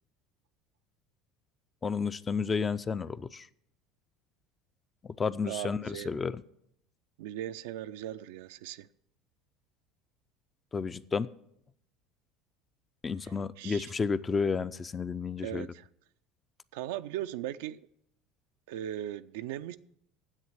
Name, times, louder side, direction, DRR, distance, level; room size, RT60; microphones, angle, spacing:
voice 1, 1.8-3.5 5.2-6.4 10.7-11.3 13.0-15.7, left 5 dB, 25° left, 0.5 m, -31 dB
voice 2, 5.5-6.1 7.2-8.9 13.2-13.3 13.6-13.9 15.4-15.9 16.7-17.8 18.7-19.8, right 12 dB, 75° right, 0.3 m, -38 dB
9.8 x 7.9 x 7.4 m
hypercardioid pair, 75°, 0 cm